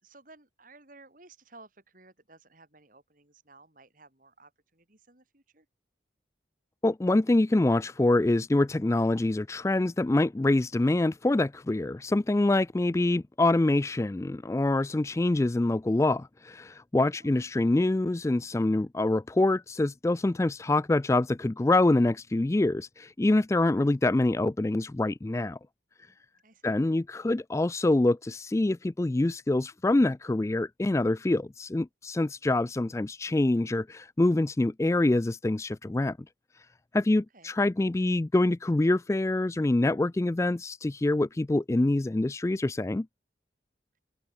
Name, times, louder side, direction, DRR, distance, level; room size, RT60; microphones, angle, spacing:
voice 1, 0.0-5.7 17.1-17.4 26.4-26.8 32.4-32.6 37.1-37.5, right 3 dB, 45° right, 4.8 m, -56 dB
voice 2, 6.8-25.6 26.6-36.2 36.9-43.1, left 2 dB, 15° left, 0.3 m, -25 dB
open air
head